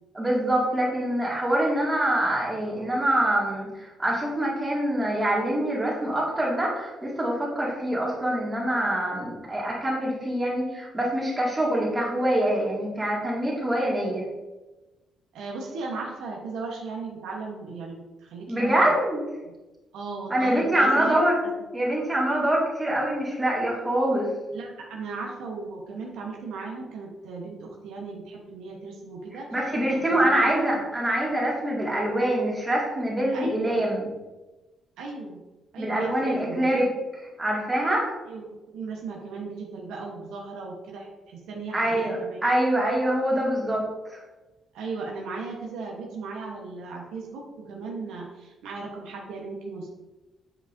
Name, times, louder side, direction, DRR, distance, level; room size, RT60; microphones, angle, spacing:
voice 1, 0.1-14.3 18.5-19.2 20.3-21.4 21.7-24.3 29.5-34.1 35.8-36.8 37.2-38.1 41.7-42.2 42.4-43.8 44.1-44.2, right 1 dB, 15° right, -4 dB, 2.2 m, -25 dB
voice 2, 15.3-18.9 19.4-19.6 19.9-21.2 21.6-21.7 24.5-30.8 33.3-33.8 35.0-35.4 35.7-36.7 38.2-42.4 44.7-49.9, right 4 dB, 85° right, -1 dB, 1.1 m, -37 dB
7.5 x 5.3 x 2.6 m, 1.1 s
cardioid pair, 90°, 0 cm